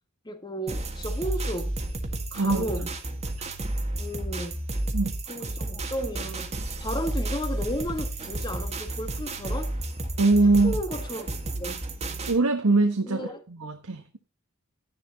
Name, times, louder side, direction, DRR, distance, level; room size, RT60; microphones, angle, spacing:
voice 1, 0.2-1.7 2.3-2.9 4.0-4.6 5.3-6.5 6.8-9.7 10.6-11.8 13.0-13.4, equal, 20° left, 1.7 m, -34 dB
sound 1, 0.7-12.4, right 1 dB, 30° right, 1.7 m, -32 dB
voice 2, 2.3-2.9 3.4-3.5 4.9-5.2 10.2-10.8 12.3-14.2, right 3 dB, 90° right, 1.5 m, -23 dB
12.0 x 10.5 x 4.0 m
head